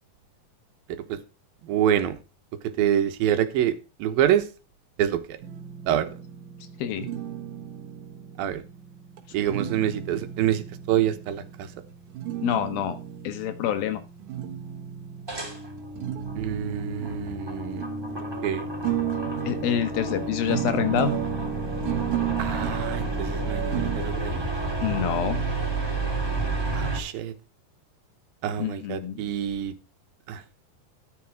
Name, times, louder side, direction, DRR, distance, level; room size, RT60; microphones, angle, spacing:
voice 1, 1.6-2.2 2.8-3.7 4.0-4.5 5.0-5.4 5.9-6.1 8.4-8.6 9.3-11.7 16.3-17.9 18.2-18.7 22.4-24.5 26.7-27.3 28.4-29.7 30.3-30.4, right 10 dB, 85° right, 9 dB, 3.0 m, -26 dB
sound 1, 5.4-24.0, right 11 dB, 65° right, 2.7 m, -34 dB
voice 2, 6.8-7.2 12.4-13.0 13.2-14.0 19.5-21.1 24.8-25.4 28.6-29.3, left 9 dB, 90° left, 10 dB, 3.3 m, -27 dB
sound 2, 10.5-10.6 15.3-27.0, right 2 dB, 5° right, 3.5 m, -31 dB
13.5 x 7.5 x 4.8 m, 0.32 s
omnidirectional pair, 4.1 m